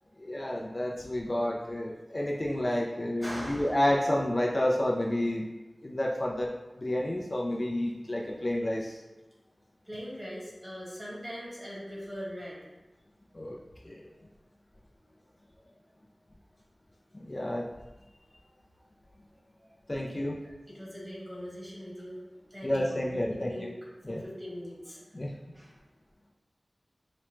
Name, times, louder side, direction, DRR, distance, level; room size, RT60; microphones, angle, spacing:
voice 1, 0.2-5.5 5.8-9.0 13.3-13.6 13.8-14.1 17.1-17.7 19.9-20.4 22.6-23.5 24.0-24.2 25.1-25.3, left 1 dB, 35° left, -1 dB, 0.4 m, -30 dB
voice 2, 3.2-3.8 9.8-12.7 15.0-15.1 15.6-15.7 19.3-19.7 20.1-20.2 20.7-22.2 22.5-23.7 24.1-25.2 25.5-25.8, equal, 25° right, -6 dB, 1.4 m, -41 dB
4.8 x 2.1 x 3.0 m, 1.1 s
wide cardioid pair, 70°, 0 cm